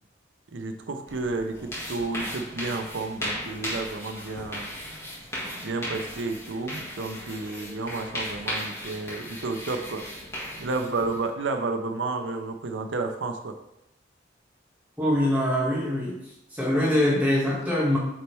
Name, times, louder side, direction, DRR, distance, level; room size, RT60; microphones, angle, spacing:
voice 1, 0.5-4.7 5.6-10.1 10.6-13.6, right 3 dB, 85° right, 6 dB, 0.6 m, -31 dB
sound 1, 1.1-11.3, equal, 15° left, 1.7 m, -36 dB
voice 2, 15.0-16.1 16.5-18.0, left 1 dB, 10° right, -7 dB, 1.9 m, -23 dB
8.7 x 4.2 x 3.4 m, 0.83 s
head